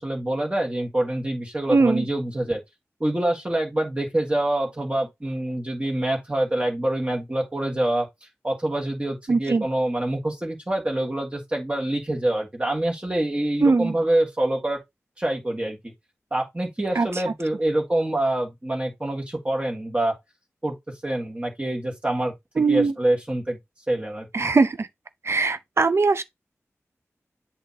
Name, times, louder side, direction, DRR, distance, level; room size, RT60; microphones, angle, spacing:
voice 1, 0.0-2.6 3.0-8.1 8.4-14.8 15.2-15.8 16.3-20.1 20.6-20.7 21.0-22.3 22.7-23.6 23.9-24.5, right 1 dB, 20° right, 1.9 m, -26 dB
voice 2, 1.7-2.1 9.3-9.6 13.6-13.9 17.0-17.1 22.6-22.9 24.3-24.9 25.3-26.2, right 4 dB, 55° right, 0.6 m, -20 dB
7.9 x 2.8 x 4.2 m
wide cardioid pair, 70°, 5 cm